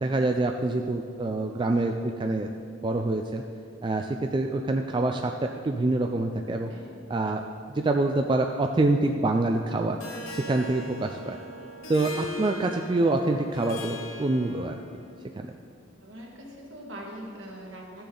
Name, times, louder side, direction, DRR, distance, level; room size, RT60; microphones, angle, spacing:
voice 1, 0.0-2.5 2.8-3.4 3.8-6.7 7.1-7.4 7.7-10.0 10.3-11.4 11.9-14.8, right 2 dB, 25° right, 4 dB, 0.3 m, -26 dB
voice 2, 6.7-7.0 16.0-18.1, right 1 dB, 65° right, -2 dB, 1.9 m, -42 dB
Harp, 10.0-15.0, left 1 dB, 90° left, 1.2 m, -40 dB
14.0 x 6.9 x 3.8 m, 2.4 s
head